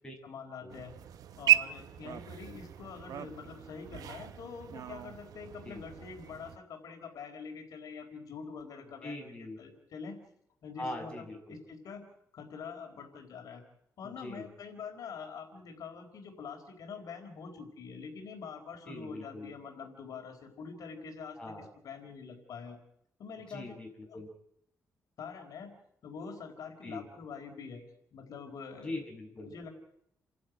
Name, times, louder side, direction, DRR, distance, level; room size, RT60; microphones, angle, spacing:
voice 1, 0.2-0.9 1.4-9.2 9.6-10.2 10.6-12.0 12.3-13.6 14.0-21.5 21.8-22.8 23.2-23.7 24.1-24.2 25.2-25.7 26.0-27.8 28.1-29.0 29.4-29.7, left 5 dB, 70° left, 4 dB, 4.2 m, -45 dB
sound 1, 0.7-6.6, right 13 dB, 75° right, 0.9 m, -34 dB
voice 2, 9.0-9.6 10.8-11.6 14.0-14.5 18.8-19.5 21.4-21.7 23.5-24.3 26.8-27.1 28.8-29.5, left 2 dB, 15° left, 1 dB, 6.8 m, -42 dB
29.5 x 12.0 x 9.1 m, 0.76 s
cardioid pair, 130°, 6 cm